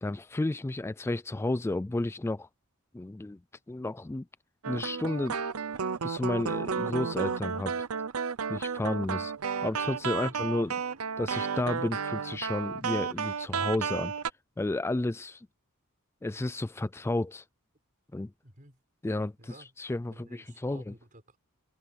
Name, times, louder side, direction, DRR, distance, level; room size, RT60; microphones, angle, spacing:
voice 1, 0.0-2.5 2.9-3.4 3.7-4.3 4.7-5.4 6.0-7.8 8.5-9.3 9.6-10.8 11.2-14.1 14.6-15.5 16.2-17.4 18.1-18.3 19.0-20.9, left 2 dB, 10° left, 0.3 m, -32 dB
sound 1, 4.6-14.3, right 6 dB, 75° right, 0.8 m, -32 dB
voice 2, 18.4-18.8 19.4-19.7 20.1-21.4, right 1 dB, 40° right, 6.5 m, -53 dB
head